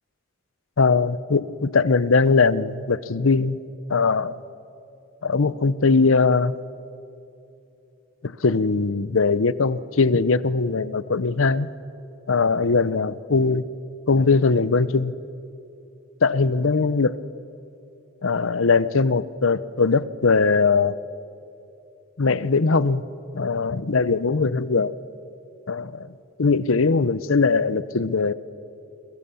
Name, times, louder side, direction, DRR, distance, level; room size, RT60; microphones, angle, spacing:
voice 1, 0.8-3.6 3.9-4.4 5.2-6.5 8.2-11.7 12.3-13.7 14.1-15.1 16.2-17.2 18.2-21.0 22.2-23.0 23.3-24.9 25.7-26.1 26.4-28.3, left 4 dB, 80° left, 17 dB, 0.8 m, -20 dB
28.5 x 22.5 x 7.0 m, 2.8 s
head